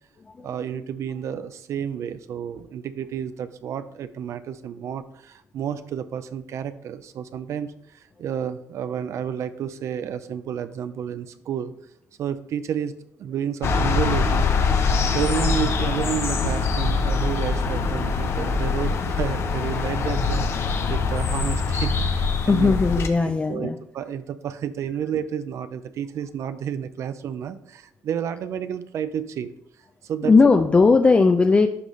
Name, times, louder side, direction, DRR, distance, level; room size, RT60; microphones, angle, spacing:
voice 1, 0.4-11.7 12.2-12.9 13.2-14.5 15.1-22.7 23.2-29.5 30.0-30.3, right 8 dB, 65° right, 12 dB, 0.5 m, -31 dB
sound 1, 13.6-23.1, left 4 dB, 50° left, 0.7 m, -23 dB
voice 2, 22.5-23.8 30.2-31.7, left 4 dB, 20° left, 7 dB, 0.4 m, -17 dB
11.5 x 3.9 x 3.1 m, 0.74 s
cardioid pair, 125°, 6 cm